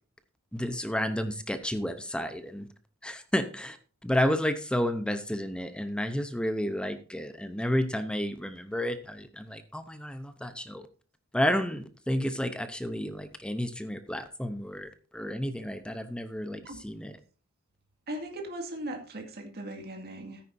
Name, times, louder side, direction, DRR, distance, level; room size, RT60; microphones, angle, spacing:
voice 1, 0.5-2.7 3.0-3.8 4.0-10.8 11.3-17.2, equal, 5° left, 10 dB, 0.7 m, -31 dB
voice 2, 18.1-20.4, right 1 dB, 50° right, 3 dB, 2.1 m, -38 dB
13.5 x 10.0 x 2.7 m, 0.38 s
head